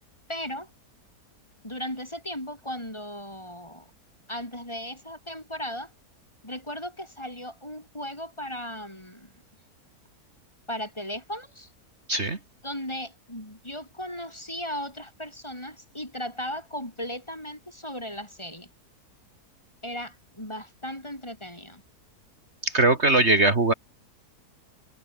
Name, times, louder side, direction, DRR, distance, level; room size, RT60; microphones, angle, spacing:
voice 1, 0.3-0.7 1.6-3.9 4.3-5.9 6.4-9.4 10.7-11.7 12.6-18.7 19.8-21.8, equal, 15° left, 5.7 m, -36 dB
voice 2, 22.6-23.7, right 2 dB, 45° right, 2.5 m, -20 dB
omnidirectional pair, 1.7 m